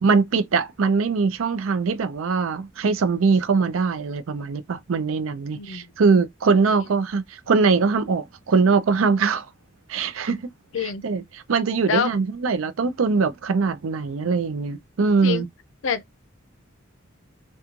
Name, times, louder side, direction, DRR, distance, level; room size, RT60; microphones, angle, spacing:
voice 1, 0.0-9.5 9.9-10.5 10.8-15.5, right 4 dB, 70° right, 0.5 m, -22 dB
voice 2, 5.5-5.9 10.7-11.0 11.9-12.1 15.2-15.5 15.8-16.0, left 6 dB, 60° left, 0.5 m, -25 dB
3.0 x 2.2 x 2.4 m
head